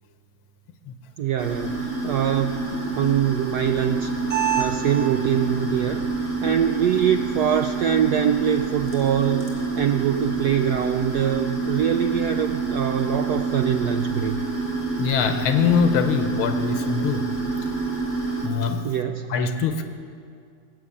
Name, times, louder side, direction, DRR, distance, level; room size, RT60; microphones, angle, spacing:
voice 1, 1.2-6.1 6.4-14.4 18.8-19.3, right 9 dB, 80° right, 8 dB, 0.9 m, -24 dB
sound 1, 1.4-18.5, right 3 dB, 15° right, 2.4 m, -27 dB
voice 2, 15.0-17.3 18.4-18.8 19.3-19.8, left 6 dB, 90° left, 8 dB, 1.9 m, -23 dB
19.5 x 8.3 x 8.5 m, 2.3 s
omnidirectional pair, 2.2 m